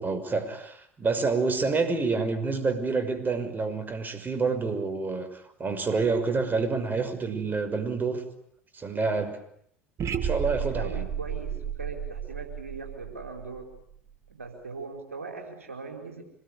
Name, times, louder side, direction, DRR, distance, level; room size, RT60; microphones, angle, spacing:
voice 1, 0.0-8.2 8.7-9.4 10.1-11.1, right 4 dB, 25° right, 9 dB, 5.8 m, -28 dB
sound 1, 10.0-14.1, right 8 dB, 40° right, 2.5 m, -33 dB
voice 2, 10.1-13.7 14.3-16.2, right 4 dB, 85° right, 3 dB, 4.6 m, -40 dB
26.5 x 21.0 x 10.0 m, 0.69 s
figure-of-eight pair, 70°, 7 cm